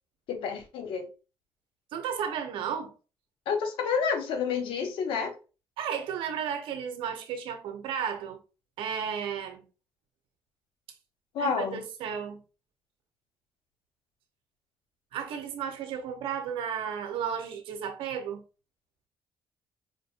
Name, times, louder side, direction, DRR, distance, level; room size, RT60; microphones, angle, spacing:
voice 1, 0.3-1.1 3.5-5.3 11.3-11.8, left 6 dB, 85° left, 0.9 m, -29 dB
voice 2, 1.9-2.9 5.8-8.4 8.8-9.6 11.4-12.4 15.1-18.4, right 8 dB, 85° right, 0.8 m, -33 dB
5.1 x 2.5 x 2.5 m
cardioid pair, 80°, 9 cm